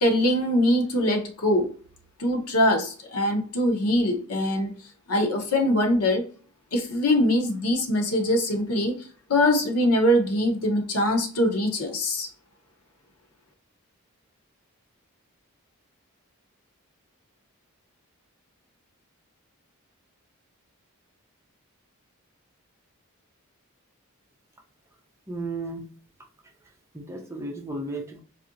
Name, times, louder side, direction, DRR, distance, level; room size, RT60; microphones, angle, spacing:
voice 1, 0.0-1.7 2.2-4.8 5.1-6.2 6.7-9.0 9.3-12.3, left 1 dB, 90° left, 3 dB, 1.0 m, -23 dB
voice 2, 25.3-25.8 26.9-28.2, right 2 dB, 10° right, 1 dB, 0.6 m, -34 dB
4.1 x 2.8 x 2.5 m, 0.42 s
head